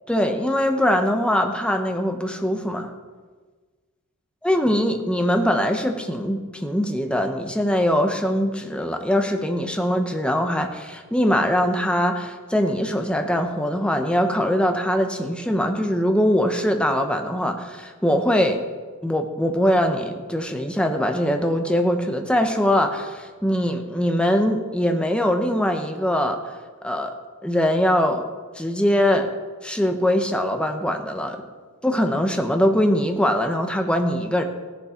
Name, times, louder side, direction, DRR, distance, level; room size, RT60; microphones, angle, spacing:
voice 1, 0.1-2.9 4.4-18.6 19.0-26.4 26.8-27.1 27.4-28.3 28.6-29.3 29.6-31.4 31.8-34.4, equal, 5° left, 5 dB, 1.0 m, -22 dB
16.0 x 11.0 x 4.4 m, 1.4 s
head